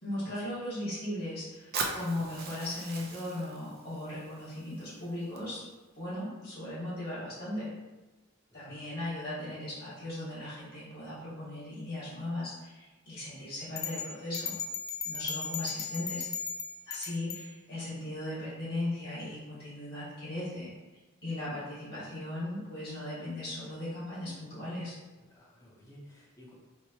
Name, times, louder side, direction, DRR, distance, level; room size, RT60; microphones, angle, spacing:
voice 1, 0.0-5.6 5.9-7.7 8.5-14.5 15.0-16.3 16.8-20.7 21.2-24.9, left 1 dB, 45° left, -9 dB, 1.5 m, -37 dB
Fire, 1.7-5.7, right 4 dB, 45° right, 0.4 m, -40 dB
sound 1, 13.8-17.5, left 6 dB, 80° left, 0.4 m, -37 dB
voice 2, 25.3-26.5, equal, 15° left, -5 dB, 0.6 m, -54 dB
4.4 x 2.1 x 2.8 m, 1.2 s
head